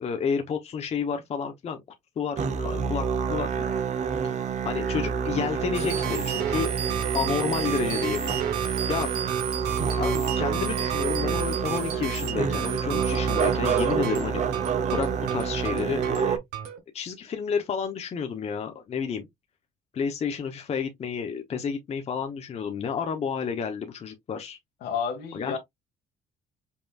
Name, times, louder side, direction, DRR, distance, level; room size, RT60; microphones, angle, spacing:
voice 1, 0.0-1.8 2.2-3.5 4.2-6.7 7.1-8.4 8.9-9.1 10.0-14.4 14.9-16.4 16.9-19.3 19.9-24.6 25.3-25.6, left 6 dB, 40° left, 0.8 m, -30 dB
Musical instrument, 2.4-16.4, right 6 dB, 45° right, 0.8 m, -28 dB
sound 1, 5.7-16.8, right 9 dB, 85° right, 1.3 m, -33 dB
voice 2, 24.8-25.6, left 7 dB, 75° left, 1.7 m, -30 dB
5.4 x 2.9 x 2.3 m
cardioid pair, 110°, 17 cm